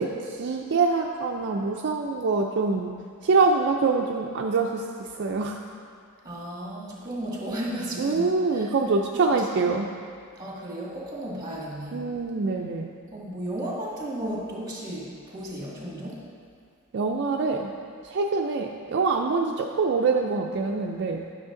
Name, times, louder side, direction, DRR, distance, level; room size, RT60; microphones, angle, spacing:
voice 1, 0.0-2.9 3.2-5.6 8.0-9.9 11.9-12.9 16.9-17.7 18.0-21.3, right 4 dB, 55° right, 1 dB, 0.4 m, -25 dB
voice 2, 6.2-8.7 9.4-9.5 10.4-12.0 13.1-16.2, right 1 dB, 15° right, -4 dB, 1.8 m, -34 dB
10.5 x 6.4 x 3.8 m, 2.2 s
head